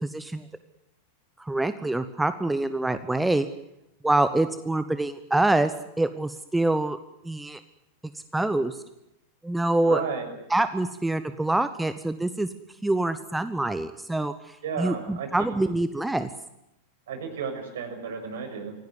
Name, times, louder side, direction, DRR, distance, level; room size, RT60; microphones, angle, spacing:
voice 1, 0.0-0.4 1.4-3.5 4.0-5.7 6.0-7.0 7.2-7.6 8.3-8.8 9.4-10.0 10.5-12.5 12.8-16.3, right 2 dB, 5° right, 12 dB, 1.1 m, -25 dB
voice 2, 9.8-10.3 14.6-15.5 17.1-18.7, right 6 dB, 60° right, 7 dB, 6.1 m, -33 dB
26.0 x 17.0 x 9.5 m, 0.87 s
figure-of-eight pair, 90°, 0 cm